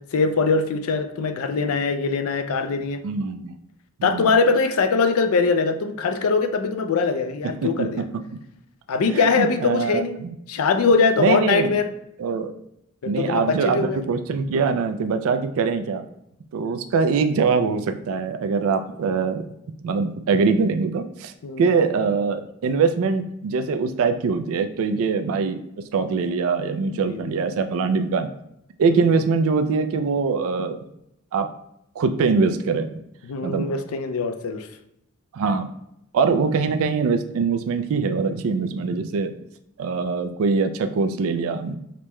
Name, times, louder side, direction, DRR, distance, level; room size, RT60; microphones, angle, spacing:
voice 1, 0.1-3.0 4.0-8.0 8.9-10.2 10.5-11.9 13.0-14.0 21.4-21.6 26.9-27.3 33.3-34.7, left 4 dB, 70° left, 8 dB, 0.4 m, -22 dB
voice 2, 3.0-3.5 4.0-4.3 7.4-8.0 9.1-10.3 11.2-11.7 12.2-12.5 13.1-16.0 16.5-19.4 19.8-25.6 25.9-28.3 28.8-30.8 31.3-31.5 32.0-32.9 33.4-33.7 35.3-35.7 36.1-39.3 39.8-41.8, right 5 dB, 65° right, 8 dB, 0.3 m, -23 dB
5.2 x 2.1 x 3.0 m, 0.79 s
head